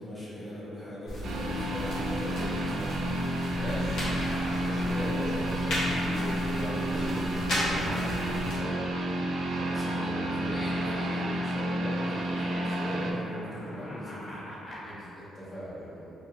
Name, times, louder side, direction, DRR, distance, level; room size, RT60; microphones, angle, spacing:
voice 1, 0.0-2.9 9.5-14.5, left 1 dB, 5° left, -11 dB, 1.1 m, -39 dB
sound 1, 1.1-8.6, equal, 85° left, 1.1 m, -35 dB
sound 2, 1.2-13.1, right 1 dB, 70° right, 0.3 m, -31 dB
voice 2, 3.5-4.0 4.4-8.8 14.8-16.1, equal, 55° left, -10 dB, 1.0 m, -38 dB
sound 3, 3.7-14.9, equal, 35° left, 0.5 m, -44 dB
3.8 x 2.5 x 2.3 m, 3.0 s
cardioid pair, 90°, 0 cm